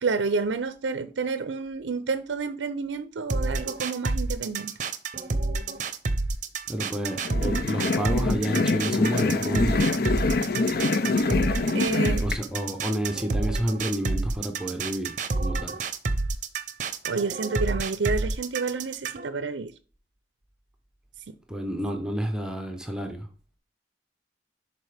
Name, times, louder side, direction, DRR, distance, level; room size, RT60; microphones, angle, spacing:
voice 1, 0.0-4.8 11.7-12.3 17.0-19.7 21.3-21.4, right 4 dB, 85° right, 0.5 m, -29 dB
sound 1, 3.3-19.3, right 3 dB, 45° right, 0.7 m, -29 dB
voice 2, 6.7-9.9 12.2-15.7 21.5-23.3, equal, 5° right, 0.8 m, -30 dB
sound 2, 7.2-12.4, left 3 dB, 55° left, 0.5 m, -25 dB
10.5 x 4.2 x 3.4 m
head